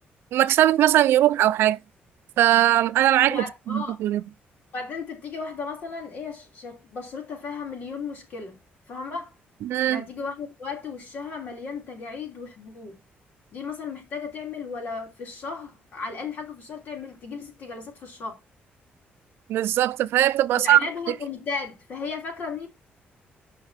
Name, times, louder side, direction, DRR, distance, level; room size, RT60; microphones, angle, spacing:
voice 1, 0.3-1.8 2.4-4.2 9.6-10.0 19.5-20.8, right 13 dB, 85° right, 0.5 m, -20 dB
voice 2, 3.3-4.0 4.7-8.6 8.9-9.3 9.9-13.0 13.5-18.4 20.5-22.7, left 4 dB, 50° left, 3.0 m, -35 dB
8.6 x 5.6 x 4.3 m
cardioid pair, 175°, 4 cm